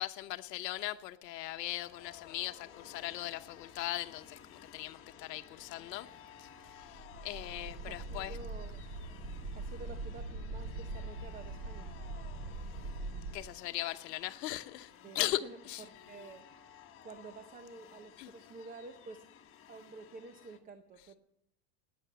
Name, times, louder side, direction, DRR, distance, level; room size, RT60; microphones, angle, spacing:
voice 1, 0.0-6.1 6.4-6.5 6.8-8.4 13.3-15.4 15.7-15.8 18.2-18.3, left 16 dB, 85° left, 1.0 m, -39 dB
sound 1, 1.2-20.6, left 9 dB, 25° left, 1.4 m, -56 dB
sound 2, 6.8-13.4, right 2 dB, 35° right, 3.6 m, -42 dB
voice 2, 7.8-8.8 9.6-11.9 15.0-16.5 17.0-19.3 19.7-21.2, right 3 dB, 15° right, 0.7 m, -50 dB
19.0 x 9.4 x 6.9 m
supercardioid pair, 150°, 48 cm